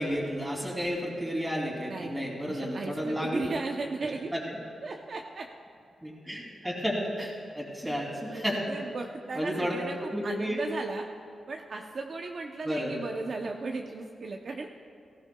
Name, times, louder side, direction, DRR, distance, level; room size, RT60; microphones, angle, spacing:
voice 1, 0.0-3.4 4.3-4.6 6.0-8.6 9.3-9.8 10.1-10.6 12.6-12.9, equal, 5° right, -2 dB, 2.7 m, -32 dB
voice 2, 1.9-4.3 4.8-5.5 8.3-10.0 10.2-11.1 11.5-14.7, right 3 dB, 50° right, 2 dB, 0.7 m, -36 dB
18.5 x 15.5 x 2.3 m, 2.4 s
wide cardioid pair, 120°, 0 cm